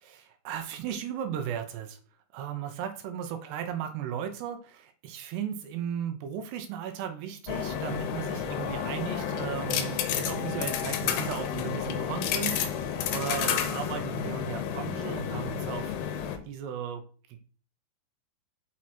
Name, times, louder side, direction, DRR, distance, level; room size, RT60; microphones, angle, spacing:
voice 1, 0.0-2.0 2.3-15.9 16.5-17.0, right 9 dB, 75° right, 6 dB, 2.7 m, -36 dB
sound 1, 7.5-16.4, left 8 dB, 75° left, 2.6 m, -31 dB
6.3 x 6.2 x 4.3 m, 0.41 s
omnidirectional pair, 5.5 m